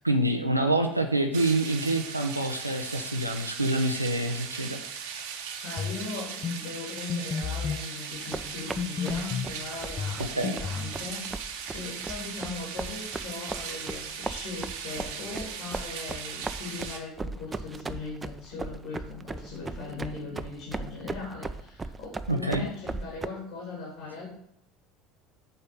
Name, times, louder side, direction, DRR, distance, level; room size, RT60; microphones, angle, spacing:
voice 1, 0.0-4.8 5.1-5.2 10.2-10.6 22.3-22.7, right 1 dB, 90° right, 4 dB, 0.6 m, -27 dB
sound 1, 1.3-17.0, right 7 dB, 65° right, 1.1 m, -38 dB
voice 2, 5.6-11.2 11.7-24.3, left 4 dB, 65° left, -3 dB, 2.9 m, -39 dB
sound 2, 5.8-6.0 6.4-6.6 7.1-7.8 8.8-9.5 10.0-10.9, left 6 dB, 30° left, 0.5 m, -31 dB
sound 3, 8.1-23.3, right 3 dB, 20° right, 0.5 m, -37 dB
6.7 x 4.3 x 6.7 m, 0.72 s
figure-of-eight pair, 65°, 0 cm